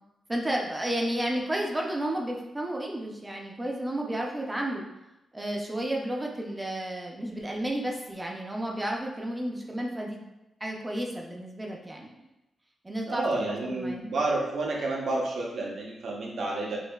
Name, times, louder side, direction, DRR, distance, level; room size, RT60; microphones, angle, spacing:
voice 1, 0.3-4.8 5.3-10.2 10.6-12.2 12.8-14.1, right 1 dB, 15° right, 0 dB, 0.5 m, -32 dB
voice 2, 13.1-16.8, right 2 dB, 60° right, -2 dB, 0.8 m, -30 dB
5.4 x 2.6 x 2.3 m, 0.95 s
wide cardioid pair, 170°, 0 cm